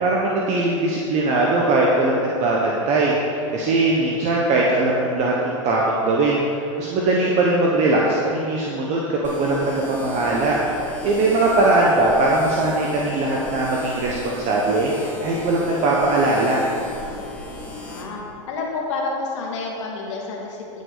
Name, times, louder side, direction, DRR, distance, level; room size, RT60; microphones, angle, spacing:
voice 1, 0.0-10.6 11.0-14.9 15.2-16.7, right 2 dB, 45° right, -3 dB, 1.2 m, -20 dB
sound 1, 9.2-18.0, left 2 dB, 10° left, 2.2 m, -35 dB
voice 2, 17.9-18.2 18.5-20.8, left 3 dB, 65° left, -2 dB, 2.0 m, -29 dB
14.5 x 5.3 x 4.1 m, 2.6 s
hypercardioid pair, 95°, 17 cm